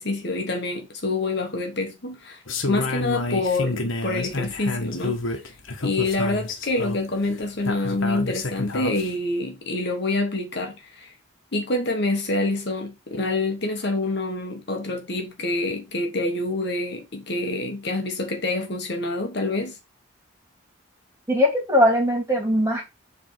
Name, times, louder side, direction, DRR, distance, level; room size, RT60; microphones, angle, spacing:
voice 1, 0.0-2.4 2.7-5.2 5.8-11.1 11.5-19.8, left 2 dB, 55° left, 1.3 m, -27 dB
sound 1, 2.5-9.1, left 2 dB, 75° left, 1.3 m, -29 dB
voice 2, 21.3-22.9, left 1 dB, 15° right, 2.7 m, -20 dB
7.6 x 3.5 x 4.6 m
head